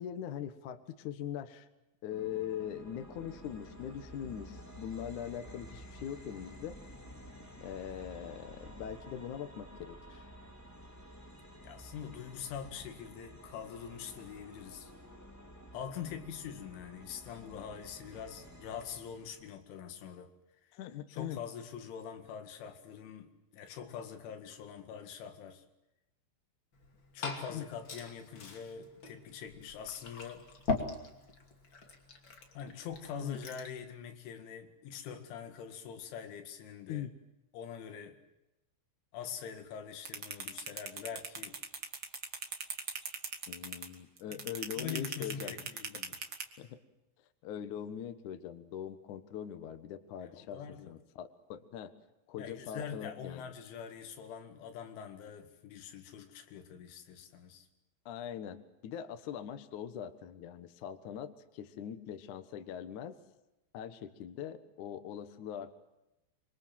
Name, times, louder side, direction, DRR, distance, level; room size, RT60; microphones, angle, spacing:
voice 1, 0.0-1.7 2.0-6.8 7.6-10.2 20.7-21.4 27.5-27.7 33.2-33.4 36.9-37.1 43.5-45.6 46.6-46.8 47.4-50.6 50.9-51.9 52.3-53.4 58.1-63.2 63.7-65.8, left 9 dB, 90° left, 9 dB, 1.7 m, -42 dB
sound 1, 2.1-19.5, equal, 5° left, 2.1 m, -52 dB
voice 2, 11.6-14.9 15.7-20.3 21.1-25.6 27.1-30.5 32.5-37.1 37.5-38.2 39.1-41.6 44.2-44.4 44.8-46.2 50.2-50.9 52.4-57.7, left 7 dB, 70° left, 6 dB, 4.2 m, -44 dB
Glass / Fill (with liquid), 26.7-33.8, left 4 dB, 30° left, 2.4 m, -41 dB
sound 2, 40.0-46.4, right 5 dB, 70° right, 1.1 m, -39 dB
26.0 x 25.0 x 7.6 m, 0.93 s
omnidirectional pair, 5.9 m